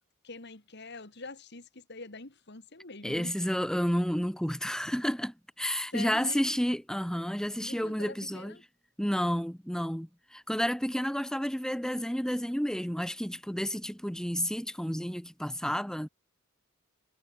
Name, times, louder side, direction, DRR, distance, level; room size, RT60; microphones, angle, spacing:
voice 1, 0.2-3.4 5.9-6.6 7.6-8.6, left 3 dB, 55° left, 2.5 m, -44 dB
voice 2, 3.0-8.5 9.0-16.1, equal, 5° left, 1.6 m, -31 dB
head